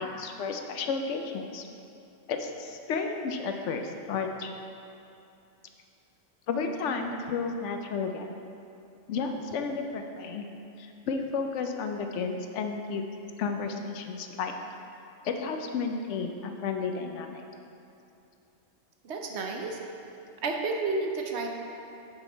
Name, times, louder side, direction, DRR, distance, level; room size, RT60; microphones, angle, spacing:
voice 1, 0.0-1.7 2.3-4.5 6.5-8.3 9.1-10.5 10.8-13.0 13.4-14.5 15.2-17.4, left 5 dB, 70° left, 4 dB, 0.9 m, -32 dB
voice 2, 19.0-19.8 20.4-21.5, right 3 dB, 65° right, 2 dB, 0.9 m, -31 dB
6.0 x 5.7 x 4.4 m, 2.8 s
omnidirectional pair, 1.3 m